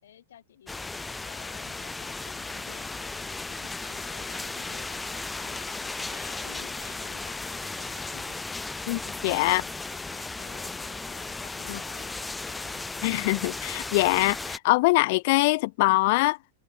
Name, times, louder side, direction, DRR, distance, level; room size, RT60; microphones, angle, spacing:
voice 1, 0.0-8.5 9.4-13.1, left 10 dB, 90° left, 3.8 m, -52 dB
sound 1, 0.7-14.6, left 3 dB, 5° left, 0.7 m, -36 dB
voice 2, 8.9-9.6 11.7-11.8 13.0-16.4, left 23 dB, 50° left, 0.4 m, -23 dB
supercardioid pair, 150°, 0 cm